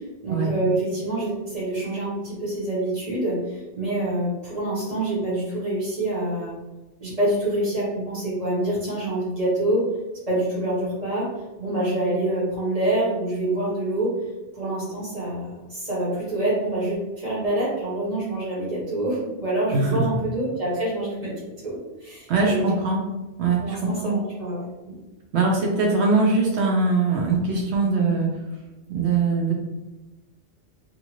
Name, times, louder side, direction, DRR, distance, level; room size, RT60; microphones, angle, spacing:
voice 1, 0.2-6.6 7.0-9.8 10.3-11.3 11.6-14.1 14.5-21.3 21.6-22.7 23.6-24.7, right 1 dB, 35° right, -7 dB, 1.3 m, -26 dB
voice 2, 19.7-20.0 22.3-23.0 23.4-24.2 25.3-28.3 28.9-29.6, right 3 dB, 85° right, -1 dB, 0.9 m, -22 dB
2.6 x 2.5 x 2.9 m, 1.1 s
omnidirectional pair, 1.1 m